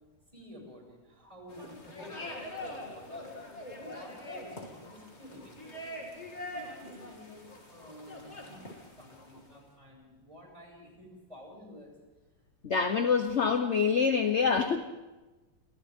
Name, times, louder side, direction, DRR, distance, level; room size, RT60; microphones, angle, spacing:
voice 1, 0.3-2.3 2.6-3.3 3.8-6.0 6.5-8.7 9.0-11.9, left 1 dB, 15° right, -1 dB, 7.0 m, -51 dB
sound 1, 1.5-9.6, left 1 dB, 30° left, 3.0 m, -44 dB
voice 2, 12.6-14.8, left 5 dB, 50° left, 7 dB, 0.9 m, -26 dB
28.5 x 27.5 x 3.7 m, 1.2 s
omnidirectional pair, 2.4 m